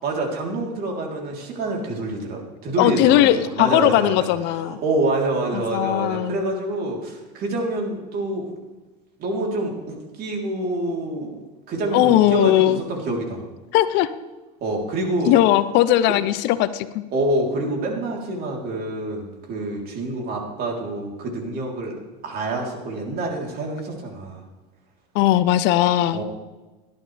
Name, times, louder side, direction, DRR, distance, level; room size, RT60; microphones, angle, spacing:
voice 1, 0.0-4.3 4.5-8.5 9.2-11.3 11.7-13.4 14.6-15.4 17.1-21.9 22.2-24.4 26.1-26.2, right 2 dB, 50° right, 0 dB, 3.7 m, -26 dB
voice 2, 2.8-4.8 5.5-6.4 11.9-12.8 13.7-14.1 15.3-17.0 25.1-26.2, left 13 dB, 60° left, 14 dB, 0.7 m, -18 dB
17.5 x 11.5 x 3.4 m, 1.2 s
supercardioid pair, 105°, 20 cm